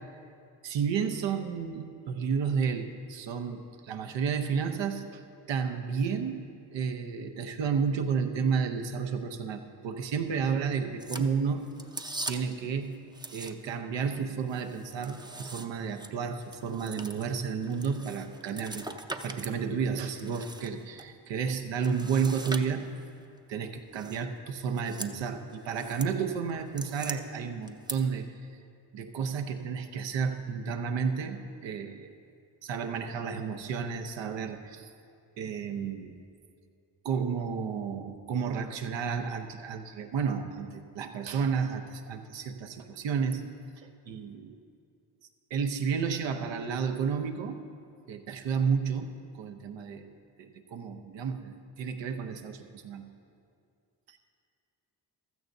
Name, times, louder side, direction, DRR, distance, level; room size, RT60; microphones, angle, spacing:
voice 1, 0.6-5.2 5.5-6.4 6.7-11.7 12.3-13.0 13.3-18.9 19.2-22.9 23.5-28.3 28.9-32.1 32.6-34.9 35.4-36.1 37.0-43.4 43.8-44.6 45.5-47.6 48.1-50.1 50.4-53.0, right 6 dB, 85° right, 5 dB, 0.9 m, -31 dB
sound 1, 11.0-12.6 13.1-13.9 14.2-19.6 19.9-21.1 21.8-23.1 24.0-24.3 24.7-25.2 25.5-26.1 26.5-27.2 27.7-27.9, right 2 dB, 10° right, 0.5 m, -41 dB
15.5 x 13.0 x 2.7 m, 2.5 s
cardioid pair, 70°, 43 cm